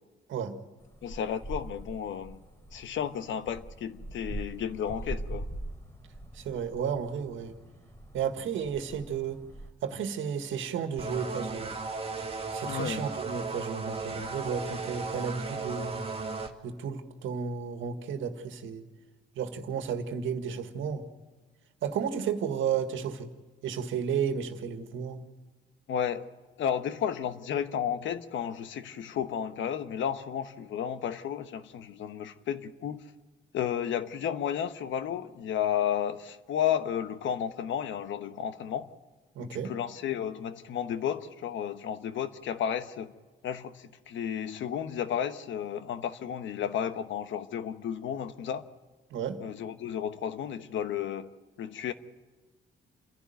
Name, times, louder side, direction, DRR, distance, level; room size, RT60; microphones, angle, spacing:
sound 1, 0.8-9.7, right 1 dB, 15° left, 3.2 m, -42 dB
voice 1, 1.0-2.4 2.7-5.5 12.7-13.1 25.9-26.3 26.6-33.0 33.5-38.9 39.4-43.1 43.4-48.6 49.4-51.9, left 9 dB, 75° left, 1.2 m, -33 dB
voice 2, 6.3-7.6 8.1-9.4 9.8-11.8 12.5-16.0 16.6-18.8 19.4-21.0 21.8-23.3 23.6-25.2 39.4-39.7 49.1-49.4, right 7 dB, 80° right, 1.8 m, -33 dB
sound 2, 11.0-16.5, right 3 dB, 30° right, 2.0 m, -36 dB
28.5 x 11.5 x 9.3 m
cardioid pair, 90°, 20 cm